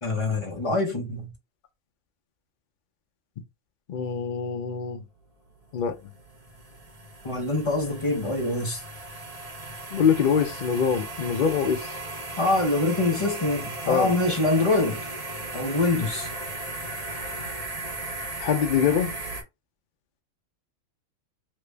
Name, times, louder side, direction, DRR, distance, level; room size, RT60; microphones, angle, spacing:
voice 1, 0.0-1.3 7.2-8.8 12.4-15.0 15.5-16.3, left 2 dB, 25° left, 0.8 m, -25 dB
voice 2, 3.9-5.0 5.7-6.0 9.9-11.9 13.9-14.1 17.1-17.5 18.4-19.1, left 7 dB, 55° left, 0.5 m, -24 dB
sound 1, 5.6-19.4, right 2 dB, 30° right, 0.8 m, -36 dB
3.2 x 2.5 x 3.3 m
omnidirectional pair, 1.5 m